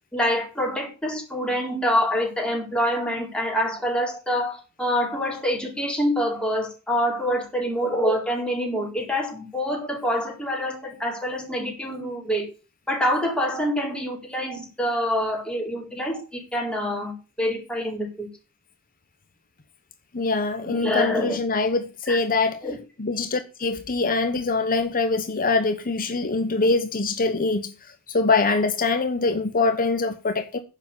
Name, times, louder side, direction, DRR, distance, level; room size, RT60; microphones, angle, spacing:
voice 1, 0.1-12.5 12.9-18.3 20.6-21.4 22.1-22.2 22.6-22.8, equal, 5° left, 4.3 m, -26 dB
voice 2, 20.1-22.6 23.0-27.7 28.1-30.6, left 3 dB, 40° left, 1.1 m, -23 dB
10.5 x 7.1 x 7.0 m
head